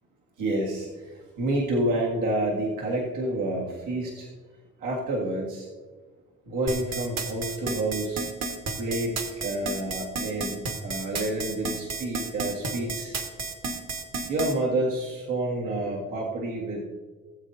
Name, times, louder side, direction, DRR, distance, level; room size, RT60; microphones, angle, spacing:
voice 1, 0.4-4.3 4.8-5.7 6.5-8.2 8.8-13.2 14.3-16.9, right 1 dB, 90° right, -3 dB, 1.8 m, -29 dB
sound 1, 6.7-14.5, right 4 dB, 60° right, 1.4 m, -32 dB
17.0 x 7.9 x 2.7 m, 1.4 s
cardioid pair, 90°, 30 cm